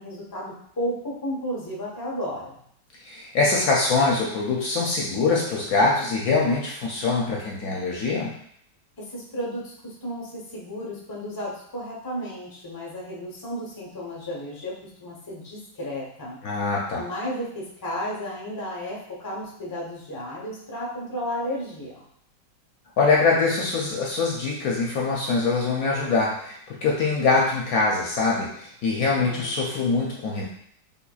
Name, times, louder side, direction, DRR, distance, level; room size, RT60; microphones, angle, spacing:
voice 1, 0.0-2.6 9.0-16.4 16.9-22.0 29.0-29.5, equal, 35° left, -4 dB, 0.3 m, -33 dB
voice 2, 3.1-8.3 16.4-17.0 23.0-30.4, left 3 dB, 70° left, -3 dB, 0.9 m, -23 dB
5.5 x 2.2 x 2.3 m, 0.66 s
omnidirectional pair, 2.0 m